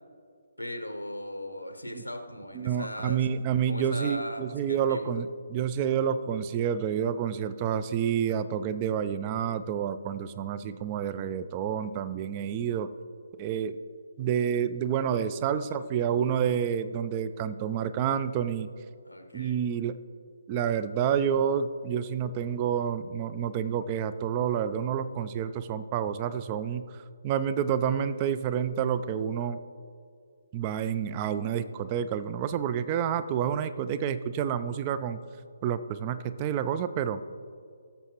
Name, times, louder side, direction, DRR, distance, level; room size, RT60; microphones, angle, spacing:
voice 1, 0.6-3.3 3.7-5.1 7.9-8.2 15.5-15.8 19.0-19.6, left 1 dB, 90° left, 6 dB, 0.9 m, -38 dB
voice 2, 2.5-12.9 13.4-13.8 14.2-18.7 19.3-20.0 20.5-29.6 30.5-35.2 35.6-37.2, right 8 dB, 25° right, 13 dB, 0.4 m, -29 dB
17.0 x 7.1 x 2.9 m, 2.2 s
figure-of-eight pair, 140°, 0 cm